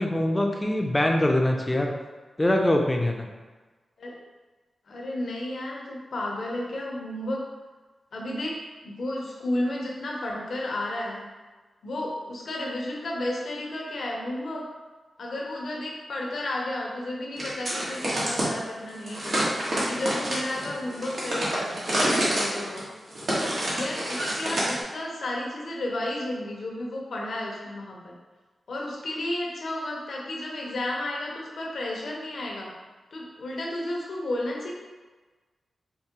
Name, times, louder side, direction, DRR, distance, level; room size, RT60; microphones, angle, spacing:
voice 1, 0.0-1.9 2.4-3.3, left 1 dB, 20° left, 2 dB, 0.5 m, -23 dB
voice 2, 4.9-7.5 8.1-11.3 11.8-14.7 15.2-19.5 19.9-22.9 23.4-28.2 28.7-32.8 33.1-34.7, left 1 dB, 75° left, -2 dB, 0.7 m, -32 dB
sound 1, 17.4-18.5 19.1-24.8, right 1 dB, 60° right, 1.1 m, -28 dB
4.6 x 2.1 x 2.9 m, 1.3 s
cardioid pair, 60°, 0 cm